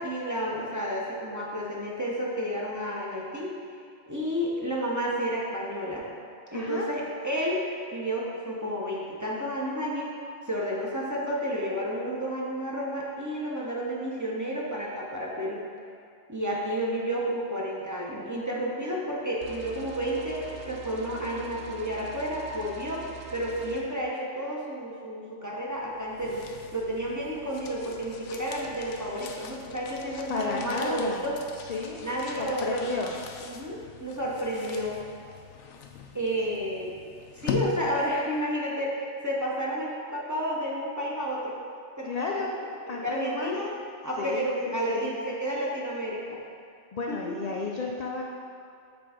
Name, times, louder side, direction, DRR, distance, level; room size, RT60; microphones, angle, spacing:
voice 1, 0.0-3.5 4.1-6.0 6.5-7.6 7.9-10.1 10.5-15.6 16.3-23.0 23.3-26.4 26.7-31.4 32.0-33.1 33.4-35.0 36.1-36.9 37.3-41.6 42.0-42.3 42.9-43.7 44.0-46.4 47.1-47.3, equal, 20° right, -5 dB, 0.7 m, -31 dB
voice 2, 6.5-6.9 30.3-31.2 31.7-32.0 32.4-33.1 42.0-42.6 42.9-43.5 44.2-45.1 46.9-48.2, left 4 dB, 65° left, -1 dB, 0.4 m, -32 dB
sound 1, 19.4-23.8, right 6 dB, 80° right, 0.9 m, -43 dB
sound 2, 25.8-38.4, left 7 dB, 80° left, 0.9 m, -41 dB
6.9 x 3.4 x 4.9 m, 2.5 s
omnidirectional pair, 1.2 m